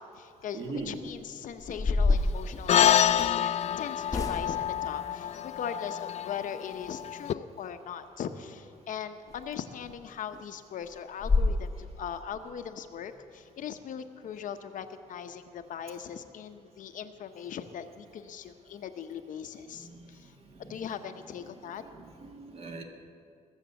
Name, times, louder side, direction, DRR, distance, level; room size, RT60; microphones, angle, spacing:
voice 1, 0.0-20.3 20.6-21.8, left 8 dB, 65° left, 8 dB, 0.8 m, -40 dB
voice 2, 0.5-0.9 19.8-19.9 20.5-20.8 21.8-22.8, right 4 dB, 45° right, 3 dB, 1.8 m, -40 dB
sound 1, 0.9-1.1 1.6-3.4 4.1-4.7 9.3-9.4 9.8-9.9 10.3-10.4 10.8-10.9 11.2-11.6, left 3 dB, 25° left, 0.8 m, -28 dB
sound 2, 2.7-7.3, left 10 dB, 50° left, 0.4 m, -27 dB
21.5 x 7.4 x 7.0 m, 2.3 s
cardioid pair, 135°, 14 cm